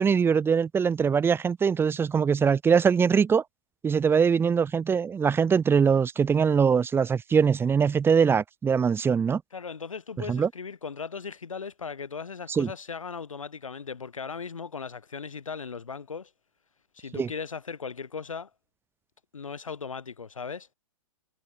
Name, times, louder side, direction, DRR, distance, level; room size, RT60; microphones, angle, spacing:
voice 1, 0.0-3.4 3.8-9.4 10.3-10.5 12.5-12.7 17.1-17.3, right 6 dB, 15° right, 1.3 m, -22 dB
voice 2, 9.5-16.3 16.9-18.5 19.3-20.7, left 5 dB, 80° left, 3.1 m, -37 dB
figure-of-eight pair, 115°, 17 cm